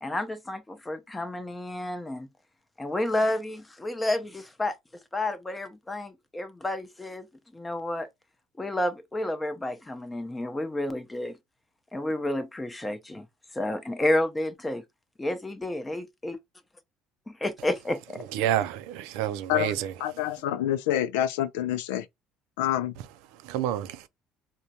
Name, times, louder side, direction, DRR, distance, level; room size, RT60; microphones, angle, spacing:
voice 1, 0.0-2.3 2.8-7.3 7.5-8.1 8.6-11.4 11.9-13.3 13.5-14.8 15.2-16.3 17.3-18.3, left 1 dB, 15° left, 0.7 m, -30 dB
voice 2, 18.3-19.9 23.3-24.1, right 11 dB, 80° right, 0.4 m, -29 dB
voice 3, 20.0-22.1 22.6-22.9, left 12 dB, 85° left, 0.3 m, -27 dB
3.6 x 2.2 x 2.8 m
supercardioid pair, 75°, 0 cm